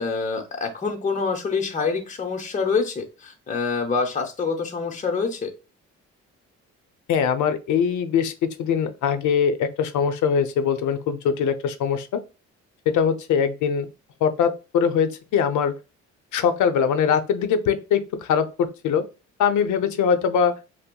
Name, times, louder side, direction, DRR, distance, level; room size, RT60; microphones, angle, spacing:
voice 1, 0.0-5.5, left 4 dB, 25° left, 3 dB, 0.7 m, -26 dB
voice 2, 7.1-12.2 12.9-13.9 14.2-15.7 16.3-19.1 19.4-20.6, left 7 dB, 75° left, 10 dB, 0.6 m, -22 dB
5.6 x 2.0 x 2.2 m, 0.30 s
cardioid pair, 90°, 30 cm